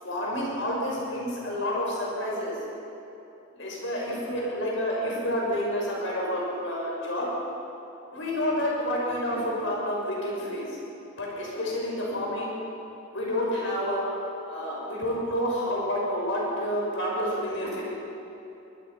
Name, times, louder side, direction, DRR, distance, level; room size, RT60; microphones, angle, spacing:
voice 1, 0.0-2.5 3.5-7.3 8.1-10.8 11.2-12.5 13.1-14.1 14.4-17.8, equal, 70° left, -3 dB, 6.3 m, -29 dB
25.0 x 22.5 x 5.8 m, 2.9 s
head